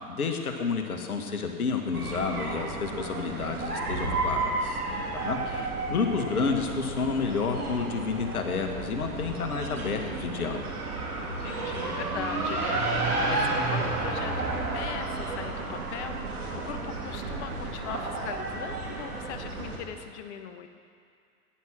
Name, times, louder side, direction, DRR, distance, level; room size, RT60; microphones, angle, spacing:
voice 1, 0.1-4.8 5.1-10.7, left 5 dB, 75° left, 4 dB, 1.9 m, -30 dB
sound 1, 1.9-19.8, right 3 dB, 80° right, 2.8 m, -32 dB
voice 2, 11.1-12.8 13.3-20.7, left 8 dB, 50° left, 7 dB, 1.4 m, -40 dB
17.0 x 10.5 x 6.1 m, 2.3 s
figure-of-eight pair, 100°, 44 cm